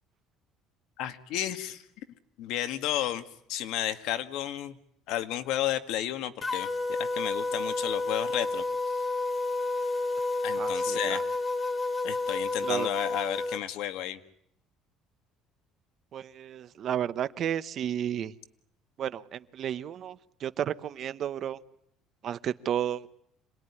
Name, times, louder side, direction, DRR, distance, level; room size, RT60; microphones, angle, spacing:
voice 1, 1.0-1.8 2.4-3.2 3.5-4.8 5.1-6.7 7.0-8.6 10.4-11.2 12.0-14.2, left 12 dB, 70° left, 10 dB, 1.9 m, -32 dB
sound 1, 6.4-13.6, left 3 dB, 20° left, 1.3 m, -30 dB
voice 2, 10.6-11.0 12.6-12.9 16.1-18.3 19.0-21.6 22.2-23.1, right 10 dB, 45° right, 14 dB, 1.0 m, -32 dB
27.0 x 20.0 x 10.0 m, 0.74 s
cardioid pair, 145°, 0 cm